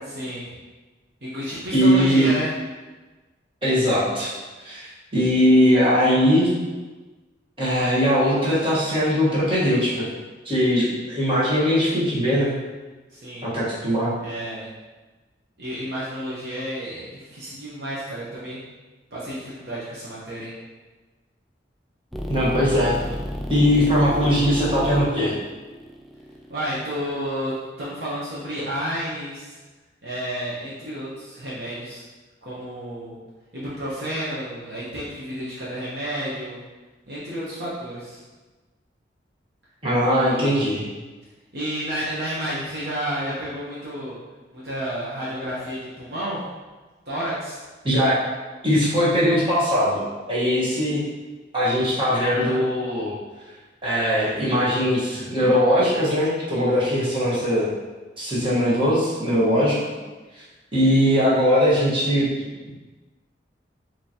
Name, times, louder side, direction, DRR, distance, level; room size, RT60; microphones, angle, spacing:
voice 1, 0.1-0.5 1.2-2.5 13.1-13.5 14.2-14.7 15.6-18.6 19.1-20.5 26.5-29.6 30.0-32.0 32.4-33.2 33.5-36.6 37.1-38.2 40.1-40.2 41.5-44.2 44.5-46.4 47.1-47.6 52.3-52.7, equal, 60° right, -9 dB, 1.0 m, -31 dB
voice 2, 1.7-2.3 3.6-4.3 4.6-6.5 7.6-10.1 10.4-12.5 13.4-14.1 22.3-23.0 23.5-25.3 39.8-40.8 47.8-48.2 48.6-50.0 50.3-51.0 51.5-53.1 53.8-57.7 58.2-59.8 60.3-60.4 60.7-62.2, equal, 30° right, -9 dB, 1.4 m, -20 dB
sound 1, 22.1-27.3, equal, ahead, 0.3 m, -31 dB
5.4 x 3.0 x 2.9 m, 1.2 s
head